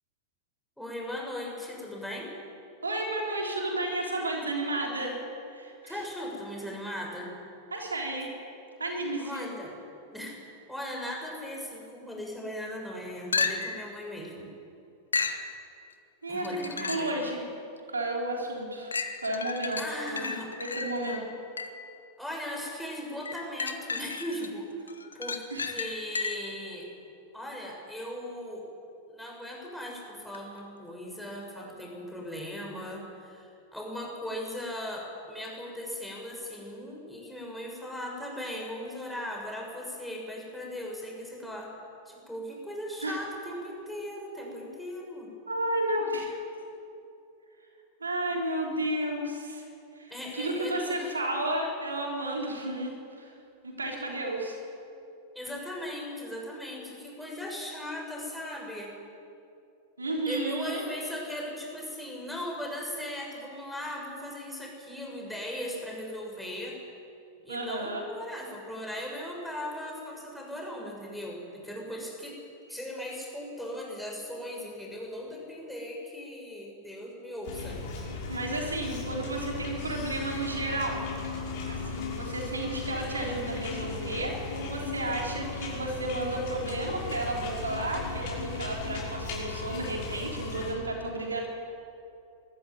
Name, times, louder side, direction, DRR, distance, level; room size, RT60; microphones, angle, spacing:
voice 1, 0.8-2.3 5.8-7.3 9.2-9.7 10.1-10.4 10.7-14.5 16.3-17.1 19.8-20.5 22.2-26.9 27.3-28.7 29.1-41.7 42.1-45.3 50.1-51.1 55.3-58.9 60.3-66.8 67.4-72.4 72.7-77.8, left 1 dB, ahead, -2 dB, 6.7 m, -38 dB
voice 2, 2.8-5.2 5.5-6.0 7.7-8.3 8.8-9.5 16.2-17.5 17.9-18.9 19.2-20.3 20.6-21.2 25.5-25.6 43.0-43.2 45.5-46.4 48.0-49.7 50.0-53.3 53.6-54.6 60.0-60.9 67.5-68.0 78.3-81.1 81.7-91.5, right 1 dB, 85° right, 0 dB, 3.7 m, -32 dB
sound 1, 13.3-13.9 15.1-15.5 16.4-17.2 17.8-17.9 18.9-21.9 23.3-24.5 24.9-26.6 30.3-30.4, left 4 dB, 85° left, 1.4 m, -33 dB
sound 2, 77.4-90.7, left 4 dB, 55° left, 5.9 m, -36 dB
21.5 x 14.0 x 9.5 m, 2.7 s
figure-of-eight pair, 95°, 0 cm